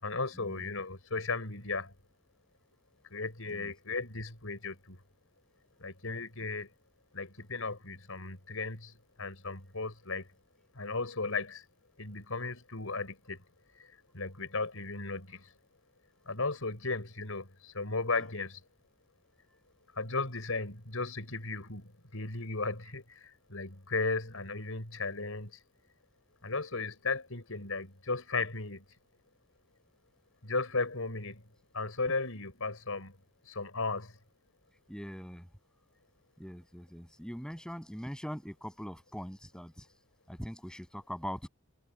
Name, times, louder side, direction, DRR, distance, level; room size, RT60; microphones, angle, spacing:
voice 1, 0.0-1.9 3.1-5.0 5.8-6.7 7.1-8.9 9.2-10.3 10.7-11.6 12.0-13.4 13.8-13.9 14.1-15.5 16.3-18.6 20.0-25.6 26.4-28.8 30.4-31.4 31.7-33.1 33.5-34.1, left 3 dB, 75° left, 4.6 m, -35 dB
voice 2, 34.9-35.5 36.4-39.9 40.3-41.5, equal, 5° left, 7.2 m, -42 dB
head